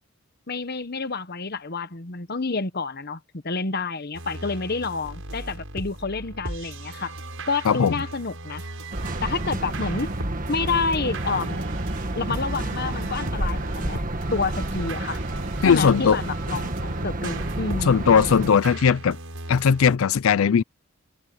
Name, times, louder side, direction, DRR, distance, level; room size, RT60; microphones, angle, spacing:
voice 1, 0.5-7.1 7.5-8.6 9.2-10.1 10.5-11.6 12.1-14.0 14.3-15.2 15.6-17.9, left 4 dB, 50° left, 1.2 m, -29 dB
sound 1, 4.1-20.0, right 1 dB, 70° right, 7.7 m, -37 dB
sound 2, 8.9-18.5, right 1 dB, 40° right, 1.7 m, -30 dB
voice 2, 15.6-16.2 17.9-19.2 19.5-20.6, left 6 dB, 70° left, 0.4 m, -18 dB
head